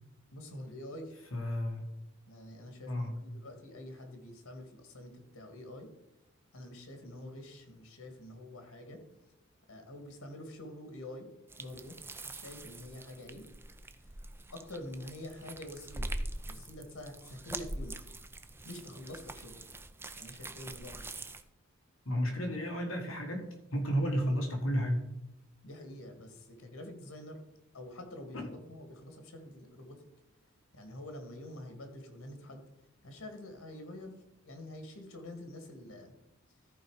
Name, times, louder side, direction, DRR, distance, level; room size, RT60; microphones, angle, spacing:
voice 1, 0.3-1.3 2.3-5.9 6.5-9.0 9.7-11.3 11.6-12.0 12.2-13.4 14.5-16.1 16.5-18.0 18.6-19.7 20.2-21.1 25.6-27.4 27.7-30.1 30.7-32.6 33.0-34.1 34.4-36.2, left 1 dB, 90° left, 5 dB, 2.0 m, -46 dB
voice 2, 1.3-1.8 2.9-3.1 22.0-23.5 23.7-25.1 28.3-28.5, equal, 70° left, 3 dB, 1.6 m, -32 dB
sound 1, 11.5-21.4, right 2 dB, 10° right, 0.4 m, -43 dB
14.0 x 4.7 x 4.8 m, 0.91 s
head